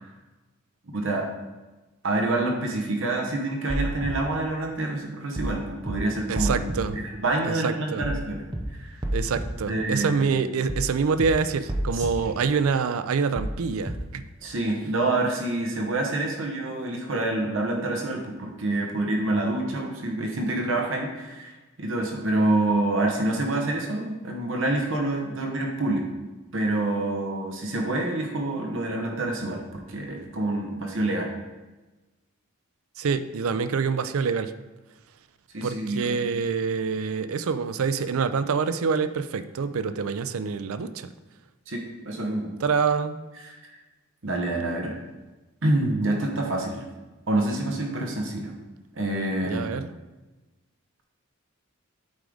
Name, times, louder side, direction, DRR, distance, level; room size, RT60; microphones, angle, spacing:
voice 1, 0.9-1.3 2.0-8.4 8.7-9.0 9.7-10.2 11.9-12.4 14.4-26.1 26.5-31.3 35.5-36.2 41.7-42.5 43.3-43.8 44.2-44.9 45.6-46.8 47.3-48.5 48.9-49.7, right 2 dB, 60° right, 1 dB, 0.9 m, -27 dB
sound 1, 3.7-4.1 5.4-5.6 5.9-6.0 6.4-6.8 8.0-8.2 8.5-8.6 9.0-9.5 10.7-10.9 11.2-11.3 11.7-12.1 13.4-13.6 13.9-14.0, right 1 dB, 20° right, 0.7 m, -29 dB
voice 2, 6.3-7.0 7.6-8.0 9.1-14.2 33.0-34.5 35.6-41.1 42.6-43.1 49.4-49.9, right 5 dB, 75° right, 12 dB, 0.4 m, -26 dB
8.2 x 4.9 x 3.8 m, 1.2 s
head